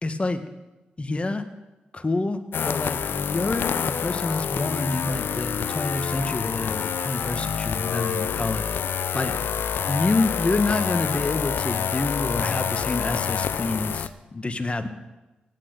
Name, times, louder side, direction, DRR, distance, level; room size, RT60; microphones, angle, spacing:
voice 1, 0.0-0.4 1.0-1.4 1.9-8.6 9.1-9.3 9.9-14.9, left 2 dB, 30° left, 9 dB, 1.7 m, -27 dB
sound 1, 2.5-14.1, left 8 dB, 70° left, 0.6 m, -27 dB
16.0 x 9.2 x 8.1 m, 1.1 s
supercardioid pair, 40°, 4 cm